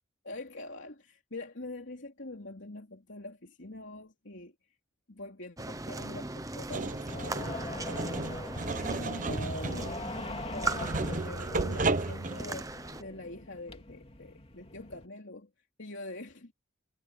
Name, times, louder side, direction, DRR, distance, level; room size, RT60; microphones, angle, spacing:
voice 1, 0.2-4.5 5.1-8.4 8.8-12.7 13.0-15.5 15.8-16.5, left 2 dB, 70° left, 3.2 m, -44 dB
sound 1, 5.6-13.0, right 3 dB, 15° right, 0.9 m, -39 dB
sound 2, 6.7-12.6, right 3 dB, 40° right, 0.9 m, -34 dB
sound 3, 7.1-15.1, left 2 dB, 30° left, 3.2 m, -42 dB
head